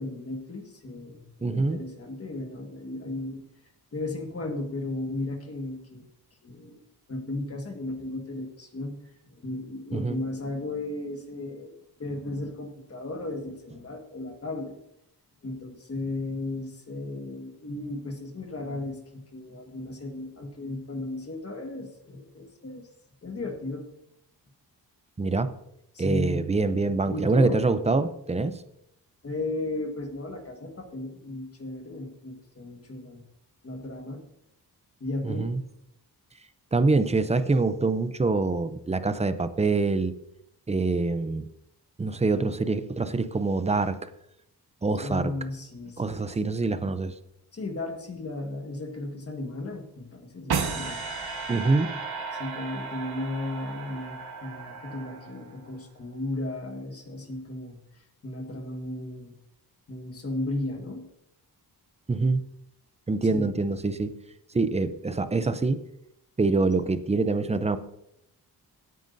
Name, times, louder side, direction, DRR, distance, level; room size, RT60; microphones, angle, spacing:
voice 1, 0.0-3.4 3.9-6.1 6.4-6.8 7.1-9.0 9.3-14.7 15.4-22.9 23.2-23.8 25.9-26.4 27.0-27.6 29.2-33.2 33.6-34.2 35.0-35.5 44.9-46.3 47.5-51.0 52.3-59.4 59.9-61.1 63.3-63.5, left 2 dB, 35° left, 4 dB, 1.5 m, -35 dB
voice 2, 1.4-1.8 9.9-10.2 25.2-25.5 26.0-28.6 35.2-35.6 36.7-40.1 40.7-41.4 42.0-44.1 44.8-45.3 46.0-47.1 51.5-51.9 62.1-62.4 63.1-64.1 64.5-65.8 66.4-67.8, right 3 dB, 15° right, 12 dB, 0.5 m, -25 dB
sound 1, 50.5-55.7, right 5 dB, 70° right, 1.4 m, -34 dB
17.0 x 9.2 x 2.6 m, 0.79 s
wide cardioid pair, 175°, 40 cm